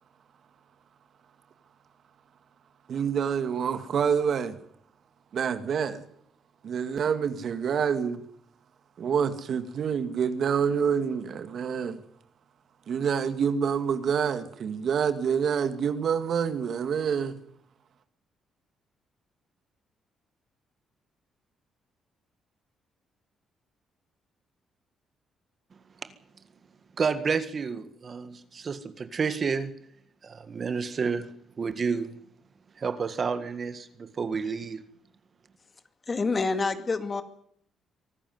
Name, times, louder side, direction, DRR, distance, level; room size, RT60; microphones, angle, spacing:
voice 1, 2.9-4.6 5.3-6.0 6.6-8.2 9.0-12.0 12.9-17.4, right 7 dB, 60° right, 10 dB, 2.0 m, -27 dB
voice 2, 27.0-29.7 30.2-31.3 31.6-32.1 32.8-34.8, right 5 dB, 45° right, 11 dB, 1.7 m, -30 dB
voice 3, 36.1-37.2, left 4 dB, 35° left, 9 dB, 2.3 m, -27 dB
24.0 x 13.5 x 9.4 m, 0.68 s
cardioid pair, 90°, 0 cm